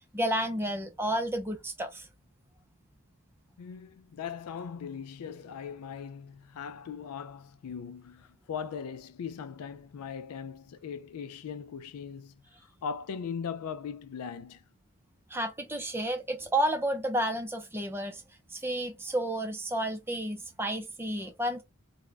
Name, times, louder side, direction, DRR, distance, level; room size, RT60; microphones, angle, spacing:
voice 1, 0.1-2.1 15.3-18.2 18.5-21.6, right 1 dB, 10° right, 0.4 m, -31 dB
voice 2, 3.6-14.6, left 6 dB, 85° left, 0.4 m, -39 dB
3.6 x 2.1 x 3.3 m
head